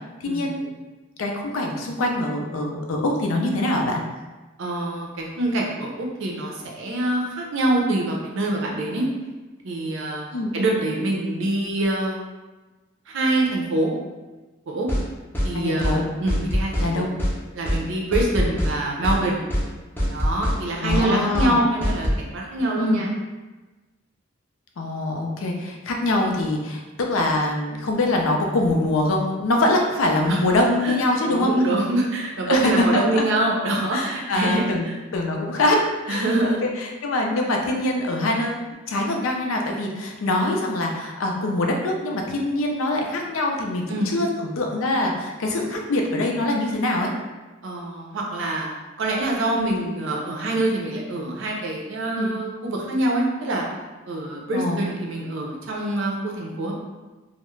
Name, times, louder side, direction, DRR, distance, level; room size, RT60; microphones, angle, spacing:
voice 1, 0.2-0.7 1.2-4.0 10.3-10.5 15.5-16.0 16.8-17.1 20.8-21.6 22.8-23.1 24.8-31.5 32.5-33.2 33.9-34.8 35.1-35.8 36.1-47.1 52.2-52.3 54.5-54.8, left 1 dB, 85° left, 1 dB, 0.4 m, -24 dB
voice 2, 4.6-9.1 9.6-10.3 10.5-12.2 13.1-13.9 14.7-14.9 15.4-17.1 17.5-19.4 20.1-23.1 30.3-30.4 30.8-30.9 31.2-35.0 36.1-36.6 43.9-44.1 47.6-48.7 49.0-53.6 54.1-56.7, right 1 dB, 65° right, -1 dB, 0.5 m, -25 dB
sound 1, 14.9-15.0 15.3-15.5 15.8-16.0 16.3-16.9 17.2-17.3 17.6-17.8 18.1-18.7 19.0-19.2 19.5-19.7 20.0-20.6 20.9-21.0 21.3-21.5 21.8-22.2, equal, 10° left, 0.5 m, -23 dB
2.3 x 2.0 x 3.0 m, 1.2 s
head